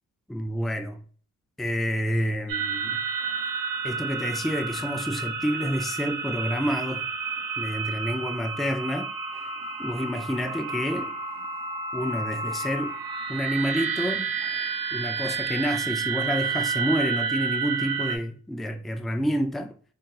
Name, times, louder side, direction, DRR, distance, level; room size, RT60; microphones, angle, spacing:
voice 1, 0.3-1.0 1.6-3.0 3.8-7.1 7.6-9.1 9.8-11.2 11.9-12.9 13.3-14.3 14.9-19.7, equal, ahead, 0.3 m, -28 dB
sound 1, 2.5-18.2, right 5 dB, 90° right, 0.6 m, -30 dB
3.7 x 2.5 x 2.6 m
cardioid pair, 70°, 34 cm